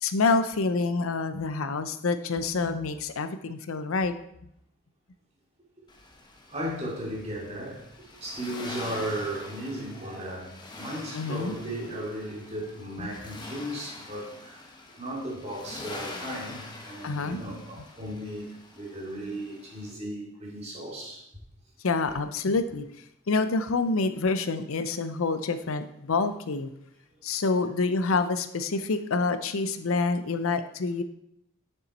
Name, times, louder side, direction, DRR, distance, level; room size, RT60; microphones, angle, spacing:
voice 1, 0.0-4.1 11.1-11.5 13.0-13.1 17.0-17.4 21.8-22.9 23.3-26.7 27.2-31.0, left 3 dB, 75° left, 10 dB, 0.6 m, -27 dB
Accelerating revving vroom, 5.9-19.9, left 2 dB, 20° left, 0.9 m, -45 dB
voice 2, 6.5-7.8 8.2-14.6 15.0-21.2, right 1 dB, 30° right, -4 dB, 2.5 m, -36 dB
7.0 x 6.8 x 4.2 m, 0.76 s
head